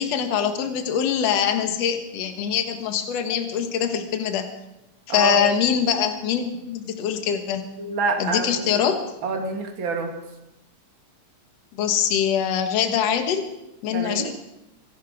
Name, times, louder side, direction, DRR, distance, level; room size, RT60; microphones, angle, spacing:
voice 1, 0.0-4.5 5.1-7.7 8.2-9.0 11.7-13.5 13.8-14.3, left 8 dB, 60° left, 6 dB, 2.4 m, -23 dB
voice 2, 5.1-5.4 7.8-8.8 9.2-10.1 13.9-14.3, right 3 dB, 40° right, 3 dB, 2.6 m, -27 dB
25.0 x 11.5 x 4.9 m, 0.92 s
omnidirectional pair, 3.6 m